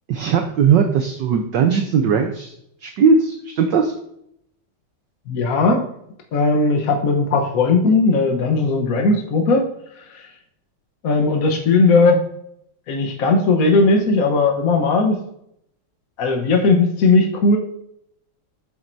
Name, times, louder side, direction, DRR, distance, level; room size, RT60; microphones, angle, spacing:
voice 1, 0.1-2.5 2.8-3.9, right 6 dB, 65° right, 5 dB, 1.3 m, -18 dB
voice 2, 5.3-5.8 6.3-9.7 10.1-10.2 11.0-12.2 12.9-15.2 16.2-17.6, left 3 dB, 50° left, 2 dB, 1.2 m, -17 dB
8.8 x 7.6 x 2.6 m, 0.74 s
omnidirectional pair, 2.3 m